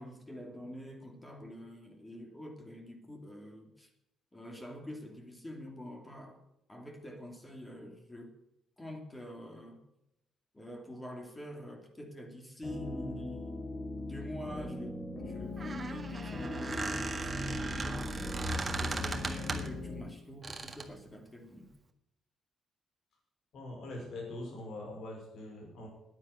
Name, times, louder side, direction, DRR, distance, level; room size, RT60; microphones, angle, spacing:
voice 1, 0.0-3.9 4.3-6.4 6.7-8.3 8.8-9.8 10.5-18.2 18.6-21.7, equal, 15° left, 3 dB, 2.8 m, -46 dB
sound 1, 12.6-20.0, left 2 dB, 45° left, 3.8 m, -40 dB
Squeak, 15.4-19.8 20.4-20.9, right 2 dB, 30° right, 1.7 m, -37 dB
voice 2, 23.5-25.9, left 1 dB, 65° left, 0 dB, 5.2 m, -43 dB
10.0 x 9.5 x 9.3 m, 0.86 s
cardioid pair, 90°, 0 cm